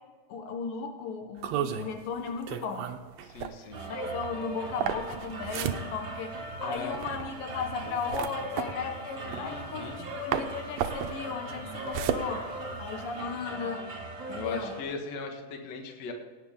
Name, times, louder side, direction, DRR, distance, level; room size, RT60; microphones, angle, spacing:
voice 1, 0.3-2.9 3.9-13.8 14.3-14.7, left 5 dB, 80° left, 4 dB, 2.9 m, -36 dB
sound 1, 1.4-10.0 10.3-13.2, right 9 dB, 75° right, 1.6 m, -34 dB
voice 2, 3.2-3.8 6.6-7.0 9.3-10.1 14.3-16.1, left 4 dB, 55° left, 4 dB, 2.4 m, -38 dB
sound 2, 3.7-14.8, right 1 dB, 35° right, 2.3 m, -39 dB
17.0 x 9.6 x 3.7 m, 1.4 s
omnidirectional pair, 3.9 m